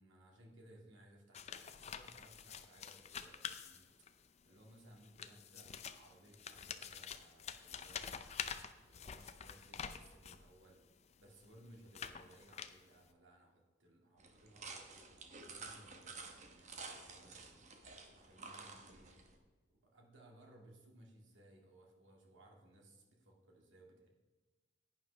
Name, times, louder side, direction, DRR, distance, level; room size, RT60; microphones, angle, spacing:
voice 1, 0.0-8.1 8.8-10.8 11.2-14.9 15.3-17.6 18.1-19.1 19.7-24.1, right 1 dB, 75° right, -1 dB, 2.2 m, -62 dB
sound 1, 1.3-4.3 5.0-10.5 11.1-13.1, left 7 dB, 35° left, 0.5 m, -47 dB
sound 2, 14.2-19.4, right 4 dB, 40° right, 1.1 m, -52 dB
11.0 x 9.3 x 3.4 m, 1.3 s
head